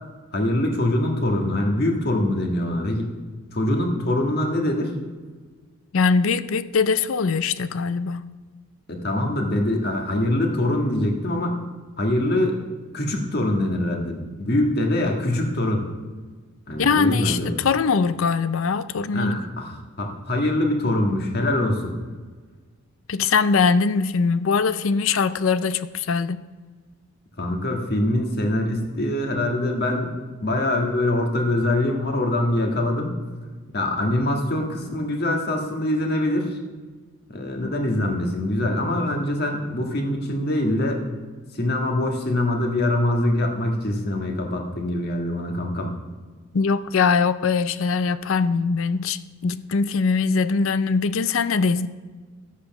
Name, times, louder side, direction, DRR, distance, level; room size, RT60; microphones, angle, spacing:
voice 1, 0.3-3.1 3.5-4.9 8.9-11.5 12.0-12.6 12.9-15.9 16.7-17.6 19.1-21.9 27.4-30.1 30.4-33.1 33.7-36.6 37.3-41.0 41.5-45.9, left 1 dB, 45° left, 1.7 m, -24 dB
voice 2, 5.9-8.2 16.8-19.4 23.1-26.4 46.5-51.9, left 5 dB, 65° left, 0.5 m, -22 dB
12.5 x 8.3 x 6.0 m
head